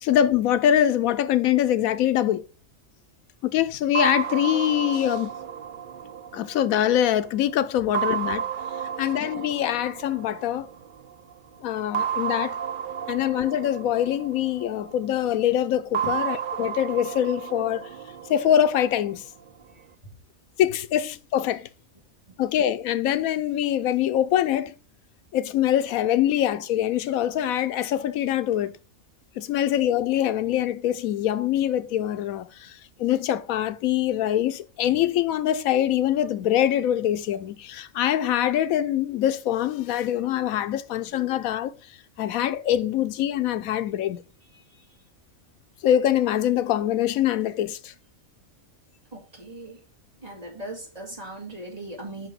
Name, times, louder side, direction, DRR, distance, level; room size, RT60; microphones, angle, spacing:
voice 1, 0.0-2.4 3.4-5.3 6.3-8.5 9.0-10.7 11.6-12.6 13.1-17.9 18.3-19.2 20.6-21.7 22.4-24.7 25.3-28.7 29.4-41.7 42.2-44.2 45.8-47.9, left 11 dB, 85° left, 1.1 m, -24 dB
sound 1, 3.9-7.3 7.9-10.9 11.9-15.1 15.9-19.1, right 8 dB, 70° right, 0.5 m, -32 dB
voice 2, 44.5-44.9 49.1-49.8 50.2-52.3, right 2 dB, 30° right, 2.5 m, -39 dB
5.5 x 4.9 x 5.9 m
omnidirectional pair, 1.4 m